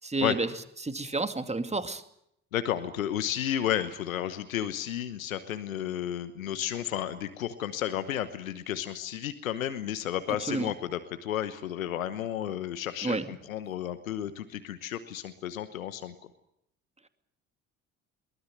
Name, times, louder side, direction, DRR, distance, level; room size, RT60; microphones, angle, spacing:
voice 1, 0.0-0.5 0.8-2.0 10.5-10.7 13.0-13.3, right 3 dB, 15° right, 9 dB, 2.4 m, -30 dB
voice 2, 2.5-16.1, left 11 dB, 80° left, 12 dB, 1.1 m, -32 dB
23.0 x 19.0 x 9.2 m, 0.75 s
figure-of-eight pair, 50°, 40 cm